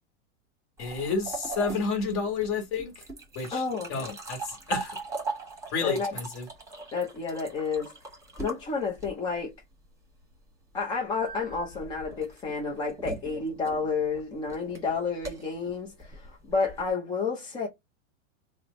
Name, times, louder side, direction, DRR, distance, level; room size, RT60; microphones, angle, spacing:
voice 1, 0.8-3.0 3.3-3.6 3.9-5.0 5.7-6.5, left 4 dB, 35° left, 1.4 m, -30 dB
sound 1, 0.8-9.4 11.2-16.9, right 3 dB, 10° right, 1.2 m, -40 dB
voice 2, 3.5-4.2 5.8-6.2 6.9-7.9 8.4-9.5 10.7-17.7, left 4 dB, 15° left, 0.5 m, -30 dB
3.2 x 2.1 x 3.6 m
supercardioid pair, 155°, 37 cm